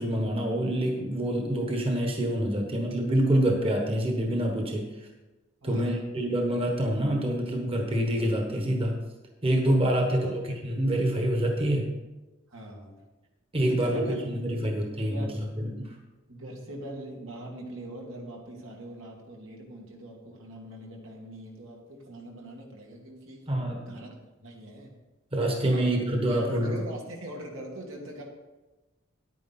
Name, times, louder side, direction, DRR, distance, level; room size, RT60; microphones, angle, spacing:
voice 1, 0.0-4.9 5.6-9.0 9.4-11.9 13.5-15.3 15.6-15.9 23.5-24.0 25.3-26.7, right 1 dB, 30° right, 2 dB, 1.3 m, -26 dB
voice 2, 5.6-6.0 10.0-10.4 12.5-13.0 13.6-14.2 14.6-14.7 15.1-15.5 16.3-23.4 23.9-24.1 24.4-24.9 25.5-25.9 26.3-28.2, right 1 dB, 80° right, -1 dB, 2.3 m, -42 dB
10.5 x 9.1 x 4.3 m, 1.1 s
head